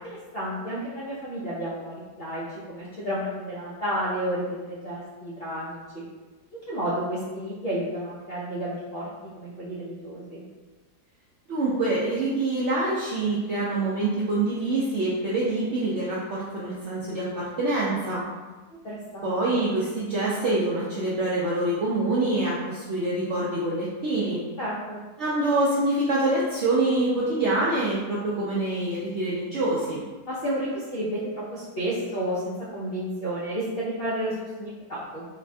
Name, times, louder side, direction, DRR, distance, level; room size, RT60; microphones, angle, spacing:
voice 1, 0.3-6.0 6.7-9.1 9.3-10.4 18.8-19.4 24.6-25.0 30.3-35.2, equal, 70° left, -8 dB, 0.5 m, -31 dB
voice 2, 11.5-18.2 19.2-24.4 25.2-30.0, right 2 dB, 75° right, -6 dB, 0.6 m, -25 dB
4.0 x 2.1 x 2.6 m, 1.3 s
omnidirectional pair, 1.7 m